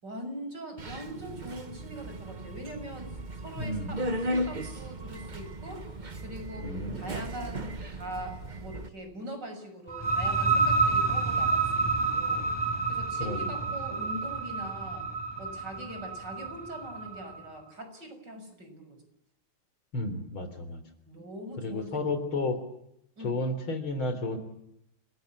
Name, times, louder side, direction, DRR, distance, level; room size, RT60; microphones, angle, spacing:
voice 1, 0.0-5.9 6.2-12.5 12.9-15.1 15.4-19.0 21.1-22.3 23.2-23.3, right 1 dB, 50° right, 7 dB, 7.0 m, -42 dB
Subway metro underground, 0.8-8.9, right 1 dB, 25° right, 1.3 m, -36 dB
voice 2, 3.6-4.0 6.6-7.0 13.2-13.5 19.9-20.8 21.6-22.6 23.2-24.4, left 2 dB, 75° left, 10 dB, 4.6 m, -32 dB
sound 1, 9.9-17.4, right 4 dB, 10° left, 3.0 m, -29 dB
29.5 x 21.5 x 8.6 m, 0.78 s
omnidirectional pair, 2.3 m